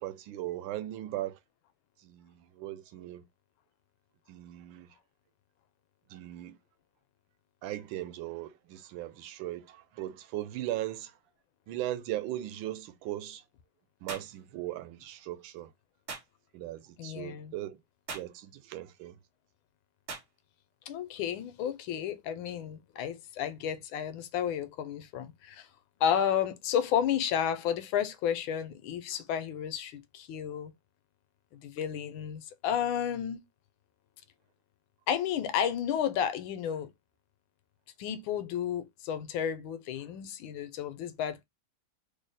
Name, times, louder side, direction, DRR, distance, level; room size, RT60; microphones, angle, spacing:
voice 1, 0.0-1.4 2.0-3.2 4.3-4.9 6.1-6.6 7.6-11.2 11.7-13.4 14.0-15.7 16.5-17.8 18.1-19.2, right 14 dB, 85° right, 1.3 m, -38 dB
sound 1, 14.1-14.3 16.1-16.3 18.1-18.3 20.1-20.3, right 4 dB, 55° right, 0.6 m, -40 dB
voice 2, 17.0-17.5 20.9-25.7 26.0-30.7 31.6-33.4 35.1-36.9 38.0-41.4, left 9 dB, 85° left, 1.4 m, -32 dB
3.3 x 2.1 x 4.0 m
omnidirectional pair, 2.1 m